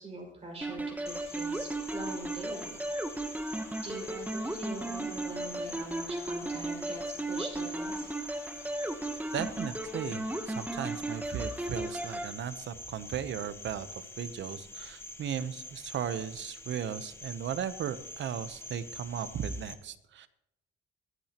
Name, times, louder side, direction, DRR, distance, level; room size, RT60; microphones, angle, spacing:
voice 1, 0.0-2.7 3.8-8.1, right 2 dB, 30° right, -2 dB, 5.5 m, -43 dB
sound 1, 0.6-12.3, right 2 dB, 10° right, 1.0 m, -36 dB
Cricket, 1.1-19.8, left 1 dB, 10° left, 1.0 m, -46 dB
voice 2, 9.3-20.3, right 8 dB, 65° right, 13 dB, 0.8 m, -36 dB
24.0 x 8.9 x 3.0 m, 0.82 s
cardioid pair, 110°, 20 cm